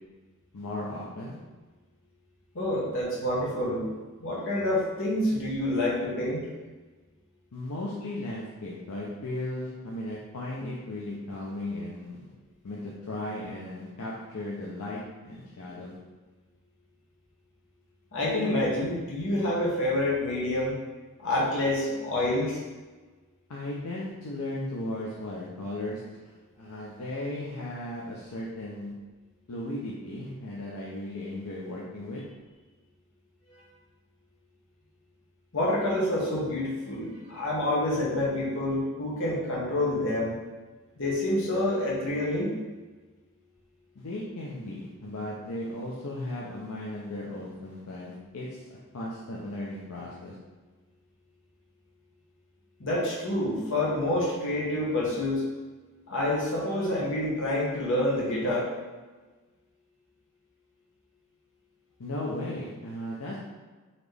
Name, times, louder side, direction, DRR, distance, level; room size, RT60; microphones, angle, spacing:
voice 1, 0.5-1.4 7.5-12.2 12.6-16.0 23.5-28.9 29.5-32.2 43.9-48.6 48.9-50.4 62.0-63.4, left 1 dB, 80° left, -5 dB, 0.6 m, -36 dB
voice 2, 2.5-3.9 4.2-6.4 18.1-20.8 21.2-22.6 33.5-33.6 35.5-40.3 41.0-42.5 52.8-55.4 56.1-58.7, left 1 dB, 60° left, -5 dB, 1.2 m, -27 dB
4.1 x 3.0 x 3.3 m, 1.3 s
head